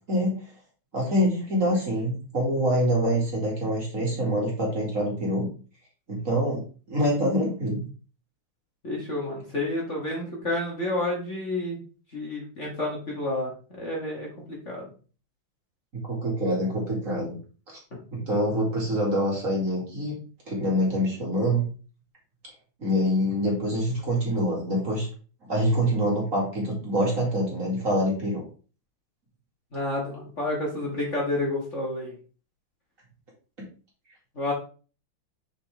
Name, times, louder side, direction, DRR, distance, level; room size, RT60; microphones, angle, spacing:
voice 1, 0.1-0.4 0.9-5.5 6.1-7.9 15.9-17.3 17.7-17.8 18.1-20.2 20.5-21.7 22.8-25.1 25.5-28.4, equal, 40° right, -3 dB, 2.6 m, -25 dB
voice 2, 8.8-11.8 12.1-13.5 13.8-14.9 29.7-32.1 34.4-34.5, left 2 dB, 35° left, -2 dB, 2.0 m, -30 dB
6.3 x 5.6 x 3.5 m, 0.37 s
omnidirectional pair, 2.2 m